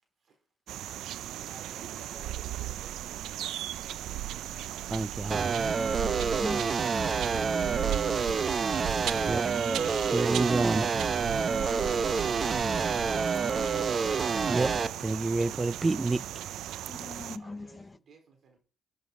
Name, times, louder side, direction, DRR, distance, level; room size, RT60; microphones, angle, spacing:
sound 1, 0.7-17.4, right 12 dB, 85° right, 0.5 m, -37 dB
voice 1, 1.3-3.2 17.4-18.6, right 4 dB, 60° right, 3.7 m, -51 dB
voice 2, 4.9-5.5 9.3-9.5 10.1-10.9 14.5-14.7 15.0-16.2, right 3 dB, 20° right, 0.4 m, -28 dB
sound 2, 5.3-14.9, right 5 dB, 40° right, 0.8 m, -28 dB
voice 3, 6.0-6.6 11.8-12.0 16.9-17.9, left 3 dB, 20° left, 0.7 m, -41 dB
12.0 x 6.4 x 5.3 m
cardioid pair, 90°, 0 cm